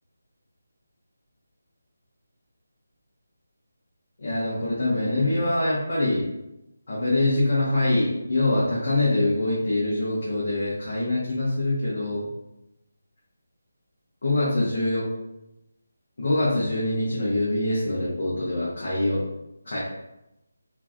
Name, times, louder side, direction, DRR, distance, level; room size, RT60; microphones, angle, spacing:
voice 1, 4.2-6.3 6.9-12.2 14.2-15.1 16.2-19.2 19.6-19.8, left 2 dB, 60° left, -8 dB, 0.9 m, -24 dB
3.0 x 2.5 x 2.3 m, 0.90 s
figure-of-eight pair, 170°, 0 cm